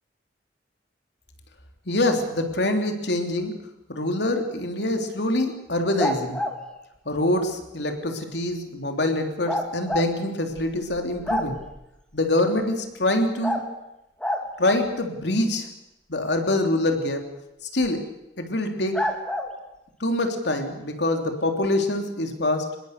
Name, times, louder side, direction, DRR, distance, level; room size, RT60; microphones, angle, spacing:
voice 1, 1.9-3.6 3.9-6.4 7.0-11.6 12.1-13.6 14.6-15.7 16.1-17.3 17.7-18.1 18.4-19.1 20.0-22.8, left 1 dB, 70° left, 5 dB, 3.3 m, -25 dB
sound 1, 6.0-6.6 9.5-10.1 10.6-10.7 10.9-11.8 13.4-13.7 14.2-14.5 17.8-17.9 18.9-19.5, left 1 dB, 5° left, 2.3 m, -27 dB
26.0 x 22.0 x 6.8 m, 0.88 s
head